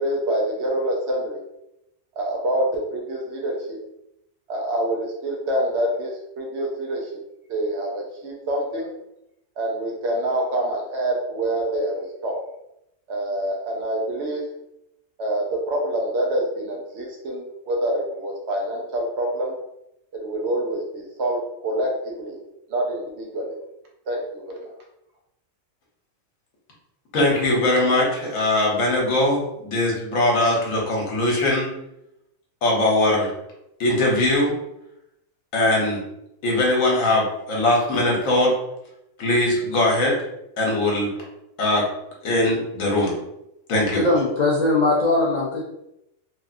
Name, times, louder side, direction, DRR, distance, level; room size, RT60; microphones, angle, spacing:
voice 1, 0.0-1.4 2.1-3.8 4.5-7.1 7.5-8.9 9.6-12.4 13.1-14.5 15.2-19.6 20.2-22.4 22.7-23.6 24.1-24.7, right 1 dB, 65° right, 0 dB, 0.8 m, -26 dB
voice 2, 27.1-31.7 32.6-33.3 33.8-34.5 35.5-36.0 36.4-38.5 39.2-40.1 40.6-41.1 41.6-41.8 42.2-43.1 43.7-44.0, left 1 dB, 75° left, -2 dB, 1.3 m, -21 dB
voice 3, 43.9-45.6, left 2 dB, 55° left, -5 dB, 0.4 m, -20 dB
3.3 x 2.5 x 2.5 m, 0.84 s
omnidirectional pair, 1.4 m